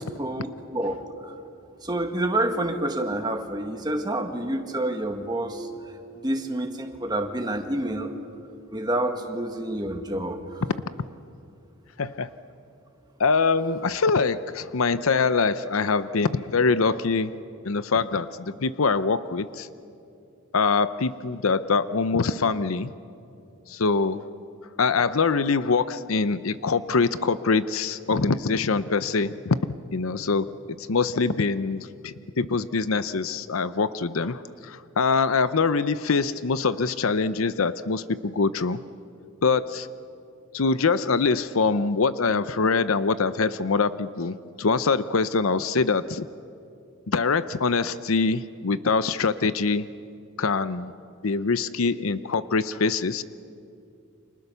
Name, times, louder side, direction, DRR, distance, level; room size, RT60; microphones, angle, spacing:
voice 1, 1.8-5.7 6.2-8.1 8.7-10.4, right 1 dB, 20° right, 4 dB, 1.9 m, -28 dB
voice 2, 12.0-12.3 13.2-17.4 17.6-19.7 20.5-22.9 23.7-24.2 24.8-29.6 29.9-30.5 30.8-38.8 39.4-39.9 40.5-46.3 47.1-49.9 50.4-50.9 51.2-53.2, left 4 dB, 80° left, 14 dB, 0.7 m, -24 dB
29.5 x 26.0 x 6.9 m, 2.5 s
head